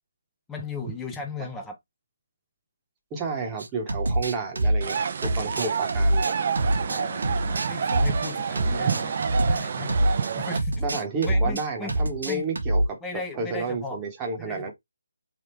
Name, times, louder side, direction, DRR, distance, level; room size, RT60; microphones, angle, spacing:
voice 1, 0.5-1.8 6.9-9.2 9.5-11.9 12.2-12.4 13.0-14.0 14.4-14.7, left 4 dB, 5° left, 0.6 m, -37 dB
voice 2, 3.1-6.3 10.8-13.0 13.3-14.7, right 4 dB, 15° right, 1.0 m, -31 dB
sound 1, 3.6-10.3 10.6-11.6 11.9-12.9, right 1 dB, 70° right, 1.3 m, -25 dB
sound 2, 4.8-10.6, right 6 dB, 40° right, 0.5 m, -28 dB
3.5 x 2.3 x 4.4 m
hypercardioid pair, 165°, 0 cm